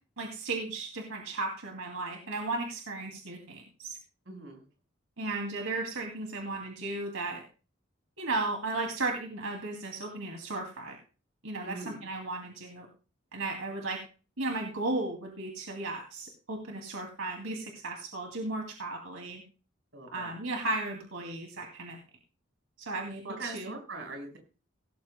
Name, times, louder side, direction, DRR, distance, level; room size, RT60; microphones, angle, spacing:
voice 1, 0.2-4.0 5.2-7.4 8.2-11.0 11.4-12.9 13.3-14.0 14.4-19.4 20.1-22.0 22.8-23.7, right 2 dB, 85° right, 1 dB, 2.5 m, -35 dB
voice 2, 4.3-4.6 11.6-12.0 19.9-20.4 23.4-24.4, right 3 dB, 60° right, 3 dB, 5.0 m, -41 dB
17.5 x 13.5 x 2.2 m, 0.35 s
head